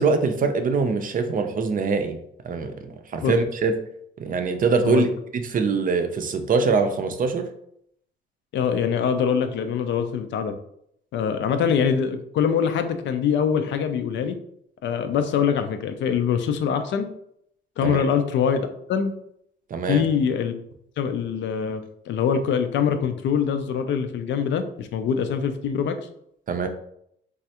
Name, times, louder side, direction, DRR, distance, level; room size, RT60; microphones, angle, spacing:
voice 1, 0.0-2.2 2.4-3.7 4.2-5.1 5.3-7.5 17.8-18.0 19.7-20.0 26.5-26.7, right 4 dB, 45° right, 7 dB, 0.5 m, -23 dB
voice 2, 8.5-10.5 11.1-14.4 14.8-17.1 17.8-19.1 19.9-20.5 21.0-26.0, left 7 dB, 65° left, 8 dB, 0.4 m, -24 dB
3.1 x 2.4 x 2.8 m, 0.72 s
cardioid pair, 90°, 20 cm